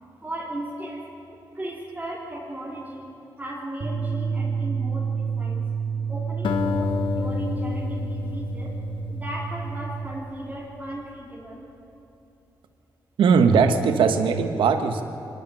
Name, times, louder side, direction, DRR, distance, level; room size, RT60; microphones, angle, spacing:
voice 1, 0.2-1.2 1.5-5.7 6.1-8.8 9.1-11.7, right 1 dB, 20° right, -6 dB, 3.8 m, -36 dB
sound 1, 3.8-10.1, right 6 dB, 45° right, 2.5 m, -29 dB
Acoustic guitar, 6.4-10.9, left 6 dB, 85° left, 1.1 m, -30 dB
voice 2, 13.2-15.0, right 5 dB, 85° right, 7 dB, 1.4 m, -19 dB
24.0 x 12.0 x 9.1 m, 2.8 s
cardioid pair, 60°, 8 cm